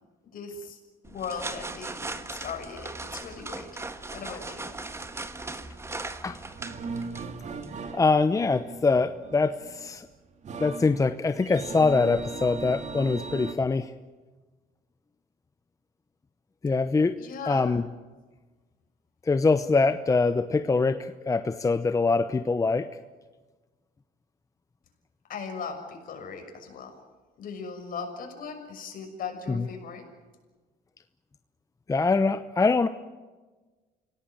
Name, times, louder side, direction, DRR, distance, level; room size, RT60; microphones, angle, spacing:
voice 1, 0.2-3.8 4.1-4.7 17.2-17.6 25.3-26.9 27.4-30.1, left 5 dB, 55° left, 4 dB, 6.3 m, -38 dB
sound 1, 1.0-7.9, right 2 dB, 15° right, 1.6 m, -39 dB
sound 2, 6.3-13.5, right 4 dB, 45° right, 2.3 m, -38 dB
voice 2, 7.9-10.1 10.6-13.9 16.6-17.2 17.4-17.9 19.2-22.9 29.5-29.7 31.9-32.9, left 4 dB, 20° left, 10 dB, 0.8 m, -24 dB
26.5 x 17.5 x 9.1 m, 1.3 s
cardioid pair, 110°, 17 cm